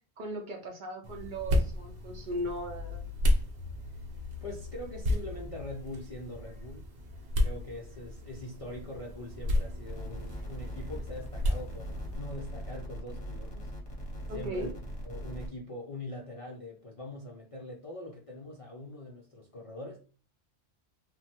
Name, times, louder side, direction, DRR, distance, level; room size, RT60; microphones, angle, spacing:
voice 1, 0.2-3.1 14.3-14.7, equal, 55° right, 0.6 m, -37 dB
sound 1, 1.0-12.2, left 1 dB, 75° right, 0.9 m, -33 dB
voice 2, 4.4-6.9 7.4-13.7 14.3-14.7 15.0-20.0, left 1 dB, 50° left, 0.4 m, -43 dB
sound 2, 9.9-15.5, equal, 35° left, 0.8 m, -40 dB
3.0 x 2.1 x 2.8 m
omnidirectional pair, 1.1 m